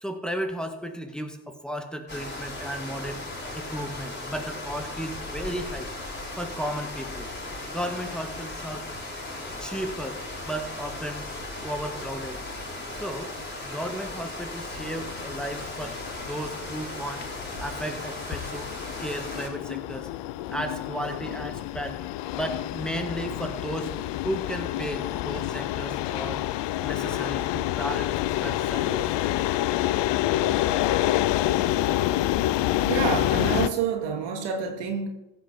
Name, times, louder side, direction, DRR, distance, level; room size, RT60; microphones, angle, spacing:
voice 1, 0.0-3.2 3.5-5.9 6.4-7.3 7.7-8.9 9.6-11.3 11.6-12.4 13.0-13.3 13.6-17.3 17.6-18.7 19.0-20.1 20.5-22.0 22.3-24.0 24.2-26.5 26.8-29.1, equal, ahead, 5 dB, 2.1 m, -34 dB
sound 1, 2.1-19.5, left 2 dB, 20° left, 5.3 m, -37 dB
sound 2, 14.8-33.7, left 14 dB, 65° left, 0.8 m, -28 dB
voice 2, 32.9-35.1, right 6 dB, 70° right, 3 dB, 2.5 m, -28 dB
15.0 x 6.1 x 7.4 m, 0.93 s
hypercardioid pair, 60°, 45 cm